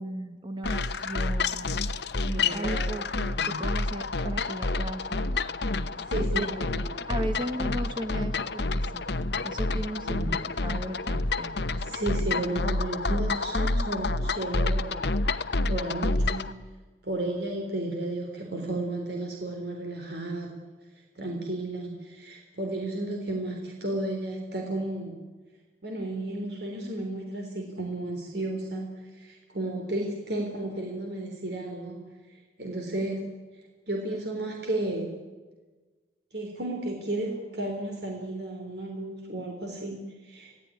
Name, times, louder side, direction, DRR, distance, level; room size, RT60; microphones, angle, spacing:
voice 1, 0.0-1.8 2.1-5.4 6.1-6.8 7.1-9.0 9.4-11.8, right 1 dB, 25° right, 7 dB, 1.9 m, -36 dB
sound 1, 0.6-16.5, left 3 dB, 60° left, 1.0 m, -28 dB
voice 2, 2.3-2.8 3.4-3.5 6.1-6.8 10.0-10.3 11.8-15.1 15.7-16.4 17.0-20.5 21.2-25.2 25.8-32.0 32.6-33.2 33.9-35.1 36.3-40.6, right 1 dB, 55° right, 1 dB, 3.5 m, -33 dB
27.0 x 17.5 x 9.9 m, 1.3 s
head